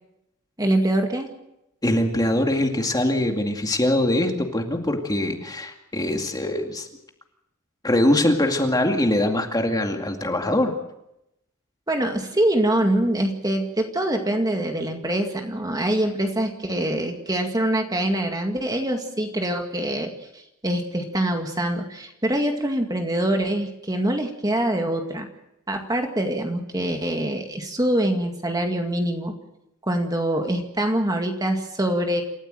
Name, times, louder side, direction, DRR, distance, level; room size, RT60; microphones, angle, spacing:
voice 1, 0.6-1.3 11.9-25.3 25.7-29.3 29.9-32.2, right 1 dB, 20° right, 3 dB, 2.1 m, -24 dB
voice 2, 1.8-6.9 7.8-10.7, left 1 dB, 20° left, 3 dB, 2.3 m, -22 dB
28.0 x 14.5 x 7.8 m, 0.85 s
head